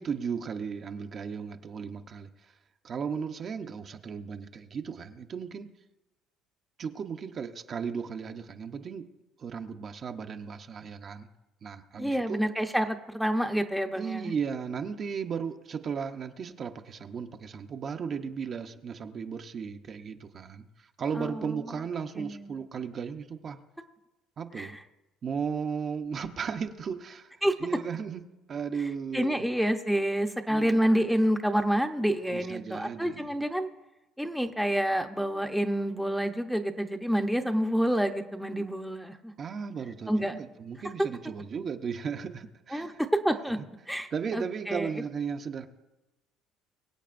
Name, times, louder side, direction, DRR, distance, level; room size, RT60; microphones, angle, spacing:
voice 1, 0.0-2.5 2.8-5.7 6.8-9.0 9.4-11.3 11.6-12.4 13.9-23.6 24.4-24.8 25.2-28.2 28.5-29.5 30.5-30.8 32.3-33.3 39.4-43.0 44.1-45.7, right 6 dB, 40° right, 5 dB, 0.8 m, -35 dB
voice 2, 12.0-14.3 21.2-21.6 22.2-22.5 24.6-24.7 27.4-27.5 29.1-33.7 34.2-39.3 40.1-40.4 42.7-43.6 43.9-44.9, equal, ahead, 6 dB, 0.8 m, -28 dB
23.5 x 8.3 x 2.6 m, 1.0 s
cardioid pair, 110°, 0 cm